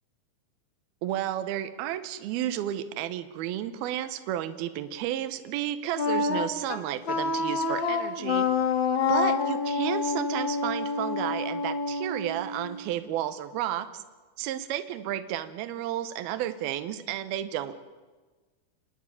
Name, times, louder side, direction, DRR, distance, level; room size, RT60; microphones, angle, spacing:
voice 1, 1.0-8.5 9.1-14.0 14.4-17.8, right 12 dB, 75° right, 11 dB, 2.8 m, -32 dB
Wind instrument woodwind instrument, 5.9-12.9, left 4 dB, 45° left, 1.7 m, -28 dB
30.0 x 10.0 x 9.7 m, 1.3 s
omnidirectional pair, 4.6 m